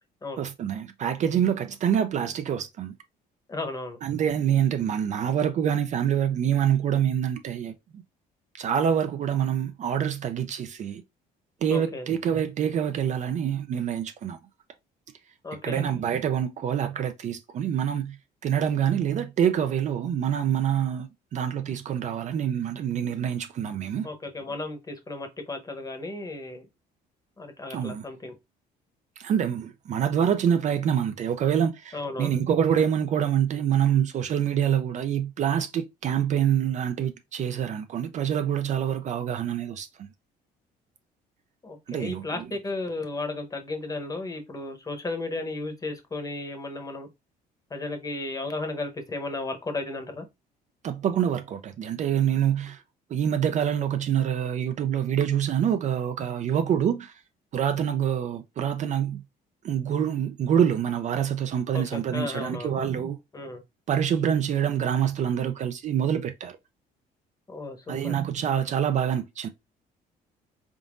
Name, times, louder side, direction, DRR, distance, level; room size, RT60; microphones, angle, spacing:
voice 1, 0.4-2.9 4.0-8.0 8.5-11.0 11.6-14.4 15.6-18.2 18.4-24.1 27.7-28.0 29.2-40.1 41.9-42.5 50.8-52.8 53.1-57.2 57.5-59.2 59.6-63.2 63.9-66.6 67.9-69.5, right 9 dB, 45° right, 0.4 m, -26 dB
voice 2, 3.5-4.0 11.7-12.1 15.4-15.9 24.0-26.6 27.4-28.4 31.9-32.4 41.6-47.1 47.7-50.2 61.7-62.7 63.3-63.6 67.5-68.2, left 2 dB, 20° left, 0.9 m, -34 dB
3.8 x 3.6 x 2.5 m
cardioid pair, 110°, 17 cm